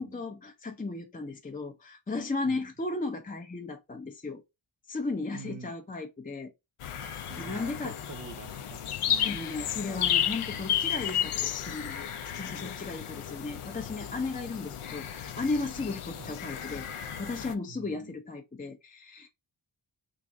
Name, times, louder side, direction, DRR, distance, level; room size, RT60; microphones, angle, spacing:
voice 1, 0.0-4.4 4.9-6.5 7.0-7.9 9.2-12.1 12.4-19.3, left 3 dB, 20° left, 0.4 m, -35 dB
voice 2, 5.3-5.7 7.3-9.4 16.2-16.4 17.7-18.2, right 5 dB, 40° right, 0.6 m, -46 dB
sound 1, 6.8-17.5, left 9 dB, 85° left, 0.6 m, -33 dB
3.2 x 2.5 x 3.5 m
wide cardioid pair, 75°, 49 cm